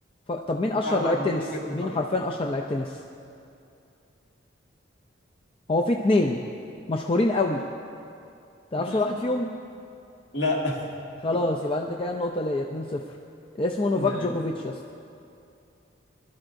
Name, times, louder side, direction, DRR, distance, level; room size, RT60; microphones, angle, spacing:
voice 1, 0.3-1.4 1.7-3.0 5.7-6.4 6.9-7.6 8.7-9.5 11.2-13.0 13.6-14.8, left 2 dB, 25° left, 2 dB, 0.4 m, -25 dB
voice 2, 0.8-1.9 8.7-9.0 10.3-10.8 14.0-14.3, left 1 dB, 60° left, -2 dB, 2.0 m, -30 dB
20.5 x 12.0 x 2.6 m, 2.6 s
head